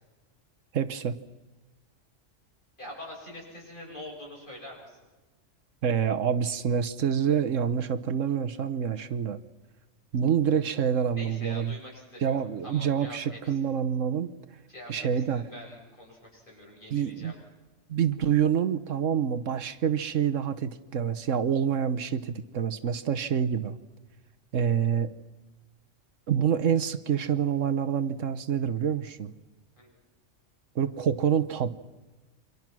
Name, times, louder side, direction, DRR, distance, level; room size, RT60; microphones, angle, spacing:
voice 1, 0.7-1.1 5.8-9.4 10.1-11.7 12.2-14.3 14.9-15.4 16.9-17.3 17.9-23.8 24.5-25.1 26.3-29.3 30.7-31.7, right 8 dB, 75° right, 13 dB, 1.4 m, -27 dB
voice 2, 2.8-5.0 11.1-13.6 14.7-17.4 29.8-29.9, left 1 dB, 40° left, -2 dB, 8.0 m, -45 dB
28.5 x 24.5 x 6.2 m, 1.2 s
omnidirectional pair, 1.3 m